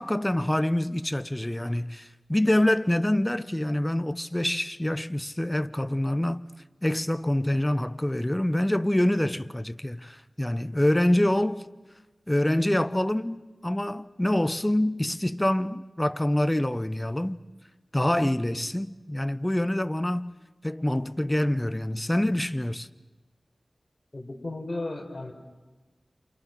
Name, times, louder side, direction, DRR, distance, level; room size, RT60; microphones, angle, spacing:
voice 1, 0.0-6.5 6.8-11.6 12.3-17.4 17.9-20.3 20.6-22.9, left 1 dB, 15° left, 0.8 m, -26 dB
voice 2, 24.1-25.3, left 2 dB, 40° left, 4.6 m, -34 dB
29.5 x 28.5 x 6.1 m
wide cardioid pair, 60°, 0 cm